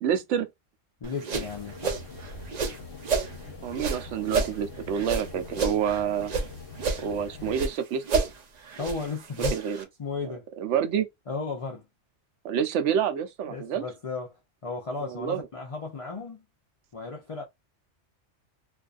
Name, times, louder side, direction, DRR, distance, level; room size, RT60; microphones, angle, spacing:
voice 1, 0.0-0.5 3.6-6.3 7.0-8.2 9.5-9.9 10.2-11.1 12.4-13.8 15.1-15.5, right 8 dB, 75° right, 0.9 m, -28 dB
voice 2, 1.0-2.0 8.8-9.6 10.0-10.5 11.3-11.8 13.5-16.4 16.9-17.4, left 4 dB, 50° left, 0.4 m, -35 dB
sound 1, 1.0-3.3 3.7-6.5 6.8-7.8 8.0-9.8, right 4 dB, 55° right, 0.4 m, -30 dB
sound 2, 1.3-7.7, left 3 dB, 65° left, 1.0 m, -43 dB
2.6 x 2.3 x 2.4 m
omnidirectional pair, 1.2 m